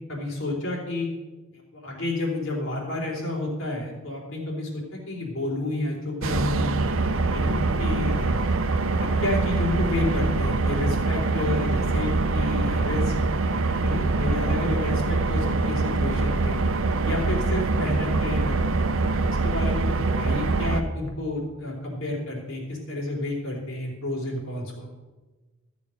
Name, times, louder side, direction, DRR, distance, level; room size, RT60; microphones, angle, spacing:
voice 1, 0.1-1.1 1.7-6.8 7.3-8.4 9.0-13.1 13.8-16.6 17.0-18.5 19.3-24.9, left 2 dB, 75° left, -2 dB, 3.7 m, -30 dB
sound 1, 6.2-20.8, right 3 dB, 80° right, 0.8 m, -24 dB
14.0 x 7.0 x 6.5 m, 1.2 s
head